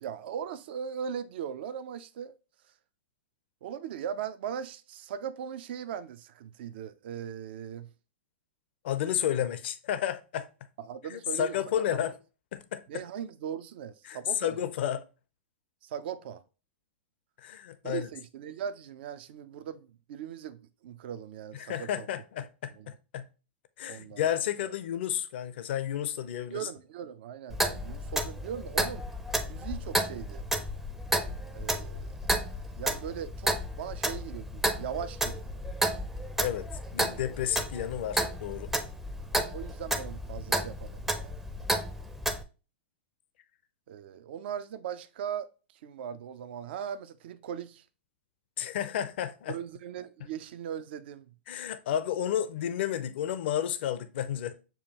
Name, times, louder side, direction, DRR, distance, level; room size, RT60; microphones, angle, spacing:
voice 1, 0.0-2.4 3.6-7.9 10.8-12.0 12.9-14.6 15.8-16.4 17.8-22.1 22.8-22.9 23.9-24.3 24.6-24.7 26.5-29.1 29.5-30.4 31.5-32.1 32.7-35.6 39.5-41.4 43.9-45.5 45.8-47.8 49.5-51.3, right 8 dB, 60° right, 0.4 m, -39 dB
voice 2, 8.8-10.5 11.1-12.1 12.5-13.0 14.0-15.0 17.4-18.1 21.5-23.3 23.8-26.7 36.4-38.7 48.6-49.6 51.5-54.5, left 10 dB, 60° left, 0.5 m, -32 dB
Clock, 27.5-42.4, right 1 dB, 5° right, 0.5 m, -32 dB
6.9 x 2.3 x 2.9 m
hypercardioid pair, 110°, 6 cm